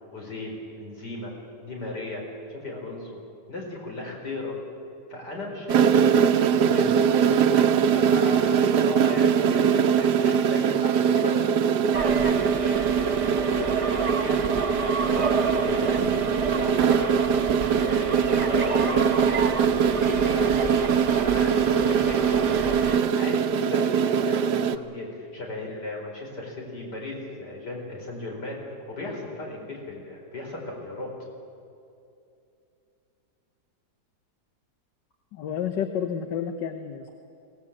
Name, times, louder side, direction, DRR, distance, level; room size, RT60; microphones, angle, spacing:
voice 1, 0.1-1.3 1.6-2.2 2.5-3.2 3.5-4.5 5.1-7.3 7.8-11.5 12.1-14.5 14.8-17.1 17.6-31.1, left 2 dB, 70° left, -1 dB, 5.1 m, -36 dB
sound 1, 5.7-24.8, right 7 dB, 75° right, 1.4 m, -22 dB
sound 2, 11.9-23.0, right 4 dB, 25° right, 0.9 m, -31 dB
voice 2, 35.3-37.1, left 8 dB, 90° left, 8 dB, 1.6 m, -30 dB
22.5 x 17.5 x 8.7 m, 2.6 s
omnidirectional pair, 1.8 m